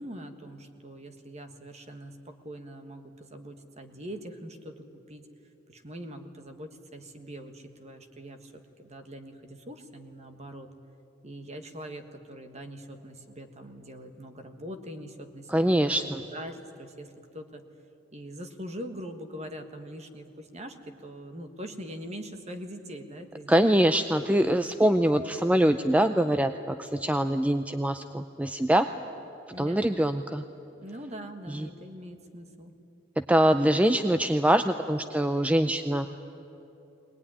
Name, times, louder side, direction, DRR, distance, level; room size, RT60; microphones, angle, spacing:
voice 1, 0.0-5.3 5.7-10.7 11.2-17.6 18.1-23.9 29.5-29.8 30.8-32.7, equal, 35° right, 7 dB, 1.5 m, -42 dB
voice 2, 15.5-16.2 23.5-28.9 29.6-30.4 31.5-31.7 33.2-36.1, right 1 dB, 5° right, 9 dB, 0.5 m, -24 dB
22.0 x 19.5 x 9.9 m, 2.9 s
head